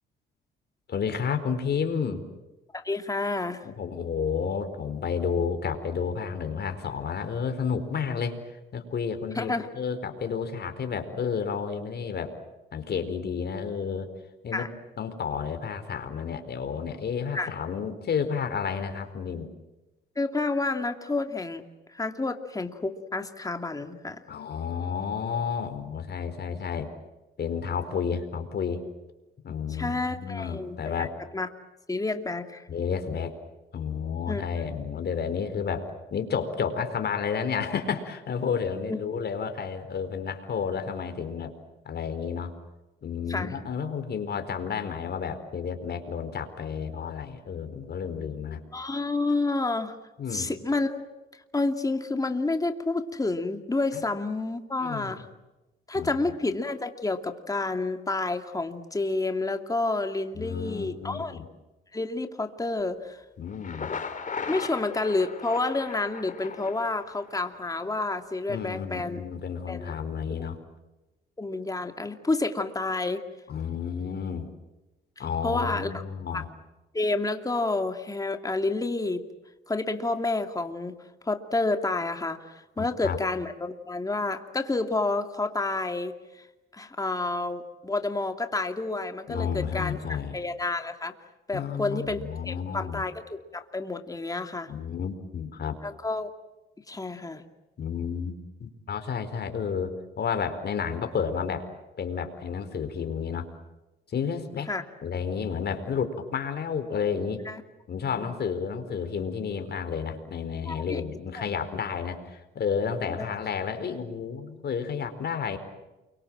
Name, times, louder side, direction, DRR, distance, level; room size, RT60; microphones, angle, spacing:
voice 1, 0.9-2.2 3.6-8.3 8.7-12.4 12.7-14.1 14.4-14.7 15.0-19.5 24.3-26.9 27.4-28.8 29.4-31.1 32.7-33.3 33.7-41.5 41.8-42.5 43.0-48.6 50.2-50.5 53.9-54.0 54.8-55.3 55.9-56.3 60.3-61.4 63.4-63.9 68.5-70.6 73.5-74.5 75.2-76.5 82.8-83.2 89.3-90.4 91.5-93.0 94.7-95.8 97.8-98.3 98.6-101.7 102.0-103.5 104.1-104.7 105.0-107.4 107.9-115.6, left 6 dB, 55° left, 8 dB, 4.4 m, -31 dB
voice 2, 2.7-3.6 9.3-9.7 14.5-14.7 17.3-17.5 20.2-21.6 21.9-24.3 29.7-31.1 31.3-31.5 31.9-32.7 34.3-34.4 38.9-39.0 43.3-43.5 48.7-50.0 50.3-51.1 51.3-55.2 55.9-61.4 61.9-63.2 64.5-69.2 69.7-70.0 70.4-70.5 71.4-73.2 75.2-75.9 76.3-76.4 76.9-79.2 79.7-80.9 81.2-86.5 86.7-91.1 91.5-94.7 95.8-96.3 96.9-97.4 104.7-104.8 107.5-107.6 108.1-108.3 110.7-111.5 113.0-113.2, left 3 dB, 15° left, 6 dB, 2.6 m, -29 dB
Thunder, 63.5-67.5, left 5 dB, 40° left, 3.1 m, -37 dB
29.0 x 24.0 x 7.6 m, 1.1 s
cardioid pair, 90°, 20 cm